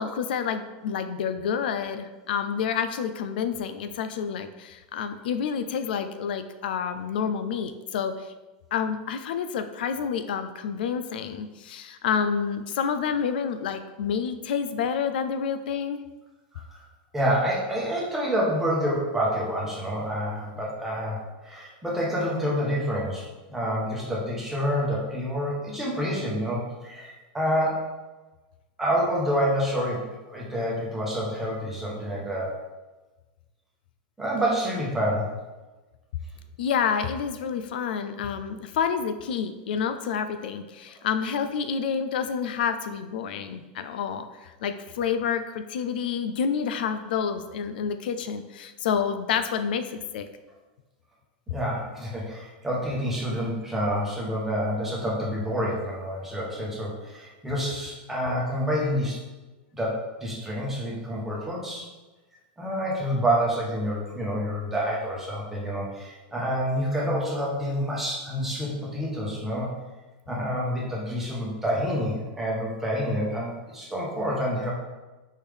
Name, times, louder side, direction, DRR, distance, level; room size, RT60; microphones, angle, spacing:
voice 1, 0.0-8.3 8.7-16.0 36.6-50.3, left 7 dB, 80° left, 10 dB, 0.3 m, -29 dB
voice 2, 16.5-16.8 17.1-27.9 28.8-32.5 34.2-35.3 51.5-59.2 59.8-61.9 62.6-69.7 70.3-74.7, equal, 5° right, -5 dB, 1.0 m, -28 dB
4.4 x 3.4 x 3.5 m, 1.2 s
supercardioid pair, 165°, 5 cm